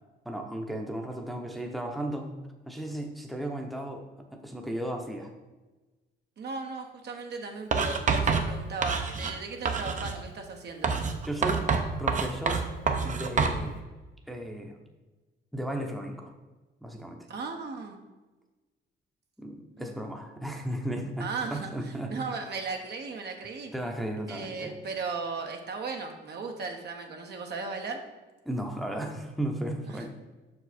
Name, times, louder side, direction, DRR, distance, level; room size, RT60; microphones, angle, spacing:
voice 1, 0.2-2.3 2.7-4.0 4.3-5.3 11.2-11.6 12.0-12.6 13.0-13.8 14.3-14.8 15.5-16.3 16.8-17.3 19.4-22.1 23.7-24.7 28.4-30.1, right 1 dB, ahead, 2 dB, 0.8 m, -35 dB
voice 2, 6.4-10.9 17.3-18.0 19.8-19.9 21.2-23.7 24.3-28.0 29.9-30.1, right 4 dB, 55° right, 3 dB, 1.0 m, -36 dB
Writing, 7.7-9.4 9.6-10.2 10.8-13.6, right 5 dB, 40° right, 0.7 m, -27 dB
6.0 x 4.8 x 4.3 m, 1.2 s
cardioid pair, 90°, 20 cm